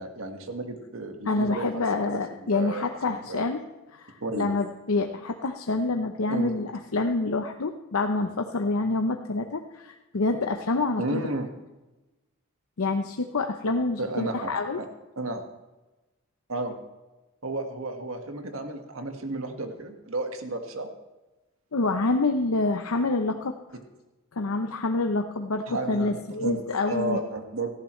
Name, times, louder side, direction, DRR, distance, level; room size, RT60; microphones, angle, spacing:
voice 1, 0.0-1.8 2.1-3.4 4.2-4.5 6.3-6.5 11.0-11.5 14.0-14.8 15.2-15.4 16.5-16.8 17.4-20.9 25.7-26.6 26.9-27.7, right 2 dB, 75° right, 5 dB, 1.6 m, -32 dB
voice 2, 1.3-3.6 3.9-11.2 12.8-14.8 21.7-23.5 24.4-27.2, left 3 dB, 85° left, 5 dB, 0.7 m, -27 dB
17.5 x 14.5 x 3.2 m, 1.1 s
head